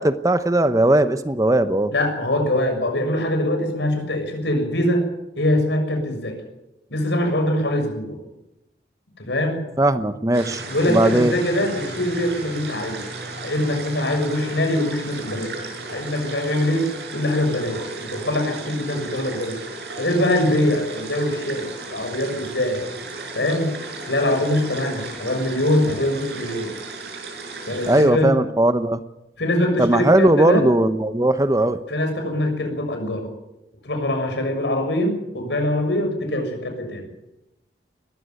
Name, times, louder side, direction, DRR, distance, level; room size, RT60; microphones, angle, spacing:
voice 1, 0.0-1.9 9.8-11.3 27.9-29.0 29.8-31.8, right 1 dB, 20° right, 11 dB, 0.9 m, -18 dB
voice 2, 1.9-5.0 5.4-6.4 6.9-8.2 9.2-9.6 10.7-13.0 13.4-15.5 15.9-16.9 17.1-19.6 20.0-22.8 23.3-23.7 24.0-26.7 27.7-28.3 29.4-30.7 31.9-33.3 33.8-37.1, left 1 dB, 90° left, 5 dB, 6.6 m, -23 dB
sound 1, 10.3-28.1, right 3 dB, 75° right, 6.7 m, -35 dB
21.0 x 15.0 x 9.3 m, 0.91 s
head